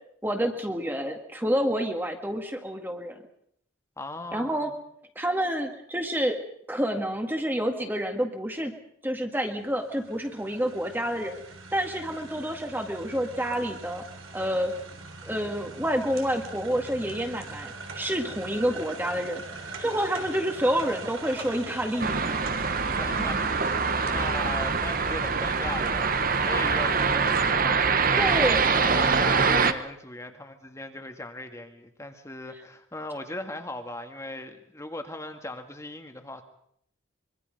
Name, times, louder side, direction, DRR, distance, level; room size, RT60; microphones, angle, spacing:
voice 1, 0.2-3.2 4.3-4.7 5.2-6.4 6.7-8.7 9.0-11.4 11.7-14.0 14.3-14.7 15.2-22.4 28.2-28.6, equal, 10° right, 4 dB, 1.9 m, -28 dB
voice 2, 4.0-4.7 23.0-36.4, left 1 dB, 15° left, 6 dB, 1.7 m, -38 dB
sound 1, 9.5-27.5, right 3 dB, 85° right, 3.9 m, -42 dB
sound 2, 22.0-29.7, right 5 dB, 45° right, 1.2 m, -24 dB
24.5 x 23.5 x 5.3 m, 0.69 s
head